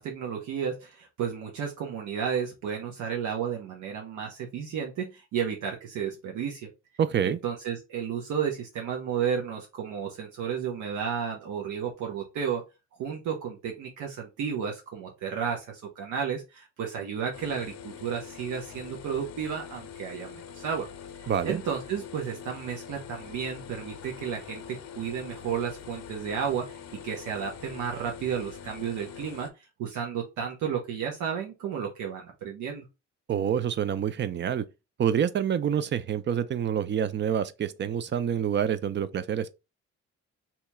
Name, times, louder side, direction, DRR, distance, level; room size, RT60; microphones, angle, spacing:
voice 1, 0.0-6.7 7.2-12.6 13.0-20.9 21.2-26.8 27.0-32.9, right 7 dB, 80° right, 0.8 m, -32 dB
voice 2, 7.0-7.4 21.3-21.6 33.3-34.7 35.0-39.5, right 8 dB, 40° right, 0.4 m, -27 dB
sound 1, 17.3-29.5, left 8 dB, 60° left, 0.6 m, -44 dB
2.8 x 2.3 x 4.0 m
cardioid pair, 90°, 30 cm